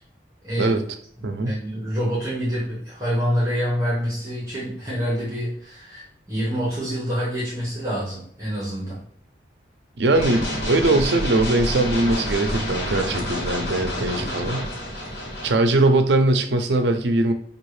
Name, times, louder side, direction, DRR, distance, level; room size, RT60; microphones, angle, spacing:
voice 1, 1.4-9.0 14.2-14.3, equal, 20° right, -8 dB, 1.1 m, -26 dB
voice 2, 10.0-14.6 15.4-17.3, right 2 dB, 80° right, 7 dB, 0.5 m, -21 dB
sound 1, 10.1-15.5, equal, 70° left, 1.2 m, -28 dB
5.4 x 2.4 x 3.1 m, 0.65 s
head